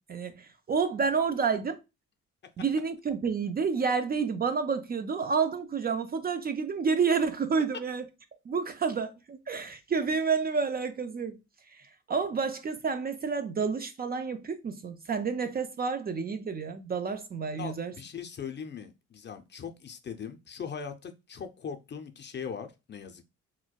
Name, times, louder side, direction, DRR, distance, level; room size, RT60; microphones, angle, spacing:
voice 1, 0.1-1.8 2.6-8.0 8.5-11.4 12.1-17.9, right 5 dB, 30° right, 0.4 m, -29 dB
voice 2, 17.6-23.2, left 7 dB, 35° left, 0.5 m, -40 dB
4.2 x 2.2 x 2.2 m
cardioid pair, 90°, 30 cm